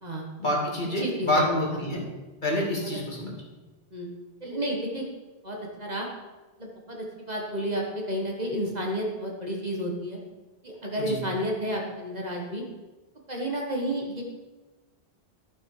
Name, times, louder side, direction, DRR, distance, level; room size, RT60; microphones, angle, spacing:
voice 1, 0.4-2.0 2.4-3.3 11.0-11.2, left 1 dB, 45° left, -3 dB, 2.4 m, -27 dB
voice 2, 1.0-1.8 2.8-3.0 3.9-4.1 4.4-5.1 5.4-6.1 6.6-10.2 10.6-12.6 13.3-14.2, equal, 40° right, -1 dB, 1.6 m, -31 dB
12.5 x 5.9 x 4.8 m, 1.2 s
omnidirectional pair, 1.1 m